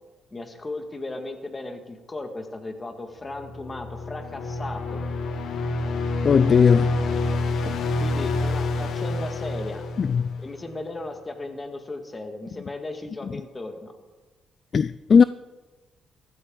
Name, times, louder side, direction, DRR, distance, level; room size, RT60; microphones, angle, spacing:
voice 1, 0.3-5.0 8.0-9.8 10.4-13.9, left 2 dB, 25° left, 1.9 m, -36 dB
sound 1, 3.3-10.7, left 3 dB, 70° left, 1.4 m, -28 dB
voice 2, 6.2-7.0 10.0-10.3 14.7-15.2, left 6 dB, 45° left, 0.3 m, -17 dB
15.0 x 13.5 x 3.9 m
cardioid pair, 90°, 0 cm